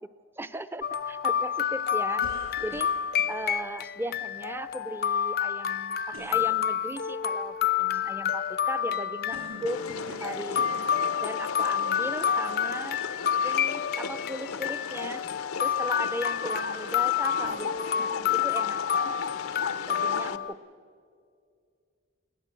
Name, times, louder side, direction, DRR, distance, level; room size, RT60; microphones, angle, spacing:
voice 1, 0.4-2.3 2.6-2.9 3.3-9.8 10.2-10.7 11.2-13.0 13.4-15.2 15.6-18.1 18.4-18.8 19.7-20.6, right 1 dB, 10° right, 13 dB, 0.6 m, -37 dB
sound 1, 0.8-20.5, left 9 dB, 45° left, 0.4 m, -29 dB
sound 2, 2.2-3.4 6.1-6.5 9.3-10.3 10.6-10.9 11.7-11.8 17.4-18.3, right 1 dB, 65° right, 6.6 m, -45 dB
sound 3, 9.7-20.4, left 5 dB, 85° left, 0.8 m, -36 dB
21.5 x 19.5 x 7.6 m, 2.3 s
head